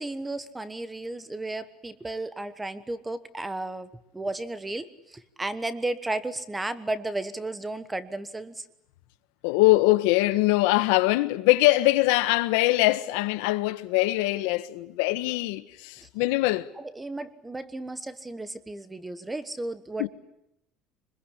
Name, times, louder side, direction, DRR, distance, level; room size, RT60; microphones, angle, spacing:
voice 1, 0.0-8.6 16.0-16.1 16.8-20.1, right 2 dB, 10° right, 1.2 m, -34 dB
voice 2, 9.4-16.7 20.0-20.1, left 19 dB, 90° left, 1.3 m, -22 dB
26.0 x 21.0 x 10.0 m
cardioid pair, 165°, 0 cm